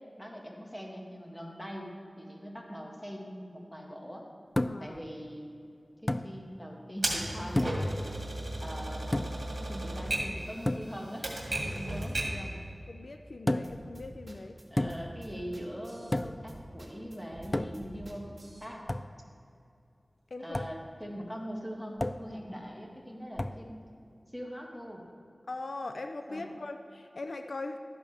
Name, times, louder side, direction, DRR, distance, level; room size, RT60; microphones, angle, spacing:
voice 1, 0.2-4.3 4.8-5.5 6.0-7.8 8.6-9.3 9.6-11.3 11.6-12.6 14.7-18.9 20.4-23.7 24.3-25.0 26.3-26.5, equal, 5° left, -1 dB, 1.9 m, -42 dB
sound 1, 4.6-5.0 6.1-6.3 7.6-7.9 9.1-9.5 10.7-10.9 13.5-13.9 14.8-15.2 16.1-16.5 17.5-17.9 18.9-19.1 20.5-20.8 22.0-22.3 23.4-23.6, left 1 dB, 30° left, 0.3 m, -31 dB
voice 2, 4.7-5.0 12.9-14.6 20.3-20.6 25.5-27.8, left 2 dB, 80° left, 6 dB, 0.5 m, -40 dB
Typewriter, 7.0-12.5, right 1 dB, 70° right, 2.1 m, -34 dB
sound 2, 13.6-18.7, right 1 dB, 40° right, 1.9 m, -48 dB
13.0 x 10.5 x 3.5 m, 2.7 s
wide cardioid pair, 55°, 0 cm